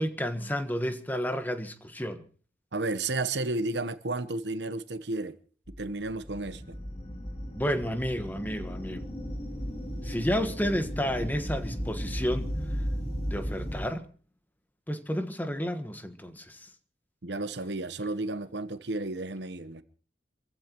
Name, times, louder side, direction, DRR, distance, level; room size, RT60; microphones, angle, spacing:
voice 1, 0.0-2.2 7.5-9.0 10.0-12.5 13.3-14.1 14.9-16.6, equal, 10° left, 1.3 m, -31 dB
voice 2, 2.7-5.4 5.8-6.8 17.2-19.8, right 2 dB, 75° right, 1.0 m, -32 dB
sound 1, 5.7-13.8, equal, 35° left, 2.7 m, -35 dB
27.5 x 15.5 x 3.0 m
head